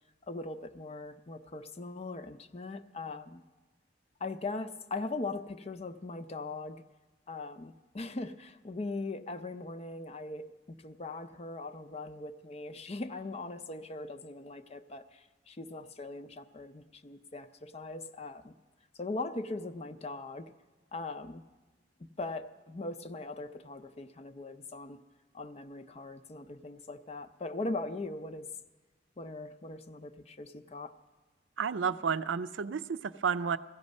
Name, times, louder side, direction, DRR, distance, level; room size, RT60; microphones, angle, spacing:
voice 1, 0.2-3.4 4.2-6.8 7.3-18.5 18.9-20.5 20.9-21.5 22.0-25.0 25.3-28.5 29.2-30.9, left 2 dB, 35° left, 9 dB, 0.5 m, -40 dB
voice 2, 31.6-33.6, right 6 dB, 90° right, 13 dB, 0.5 m, -31 dB
16.0 x 14.0 x 5.3 m, 1.2 s
head